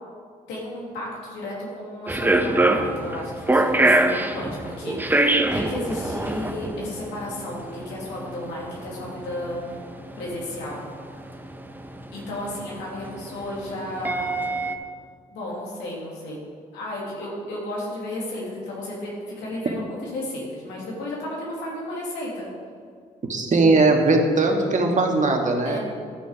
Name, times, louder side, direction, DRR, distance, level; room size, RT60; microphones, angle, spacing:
voice 1, 0.5-9.8 10.2-10.8 12.1-14.3 15.3-16.4 16.7-22.5 25.6-25.8, left 1 dB, 80° left, -4 dB, 2.6 m, -33 dB
sound 1, 2.1-14.8, right 2 dB, 10° right, 0.9 m, -24 dB
voice 2, 23.3-25.8, right 3 dB, 45° right, 2 dB, 1.6 m, -19 dB
12.0 x 6.1 x 4.9 m, 2.1 s
hypercardioid pair, 50°, 18 cm